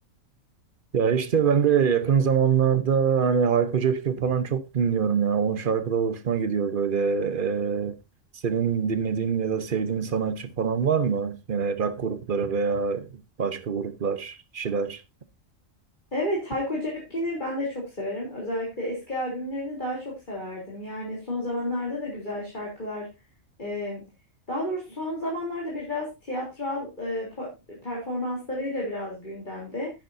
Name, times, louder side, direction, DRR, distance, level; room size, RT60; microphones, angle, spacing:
voice 1, 0.9-8.0 8.4-13.1 13.4-15.0, right 6 dB, 45° right, 1.1 m, -24 dB
voice 2, 16.1-23.1 23.6-24.0 24.5-29.9, left 1 dB, 35° left, 3.7 m, -31 dB
10.5 x 10.5 x 2.7 m
omnidirectional pair, 1.3 m